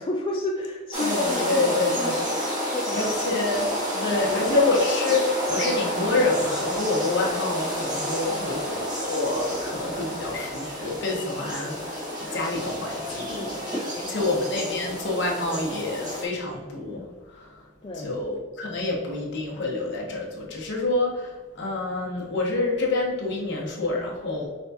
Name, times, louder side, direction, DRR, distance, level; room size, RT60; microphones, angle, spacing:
voice 1, 0.0-2.4 2.7-3.4 3.9-4.6 8.2-8.6 13.3-14.3 17.8-18.1, left 2 dB, 25° left, -1 dB, 0.3 m, -33 dB
sound 1, 0.9-16.2, equal, 20° right, 1.3 m, -30 dB
voice 2, 1.0-2.2 2.9-3.7 4.0-13.4 13.9-17.6 18.0-24.5, left 2 dB, 55° left, -2 dB, 1.1 m, -27 dB
5.3 x 3.4 x 2.7 m, 1.4 s
head